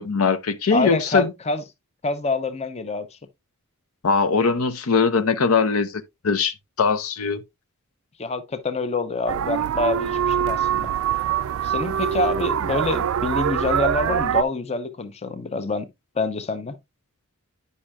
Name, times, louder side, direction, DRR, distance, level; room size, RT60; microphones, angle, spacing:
voice 1, 0.0-1.3 4.0-7.4, left 5 dB, 85° left, 0.7 m, -21 dB
voice 2, 0.7-1.6 2.0-3.2 8.2-10.9 11.6-15.9 16.2-16.8, left 3 dB, 30° left, 0.6 m, -26 dB
sound 1, 9.3-14.4, right 9 dB, 70° right, 0.3 m, -24 dB
10.0 x 5.4 x 2.3 m
head